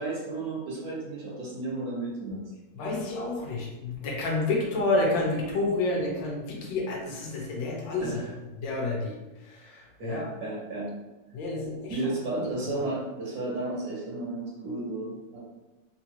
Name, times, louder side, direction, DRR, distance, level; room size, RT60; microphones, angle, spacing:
voice 1, 0.0-2.4 6.6-6.7 8.0-8.3 10.0-10.9 11.9-15.4, right 2 dB, 60° right, -4 dB, 1.3 m, -33 dB
voice 2, 2.7-8.2 8.6-9.2 9.5-10.3 11.3-12.0 12.3-12.4, left 2 dB, 80° left, -2 dB, 1.5 m, -29 dB
3.7 x 2.5 x 2.9 m, 1.1 s
omnidirectional pair, 2.1 m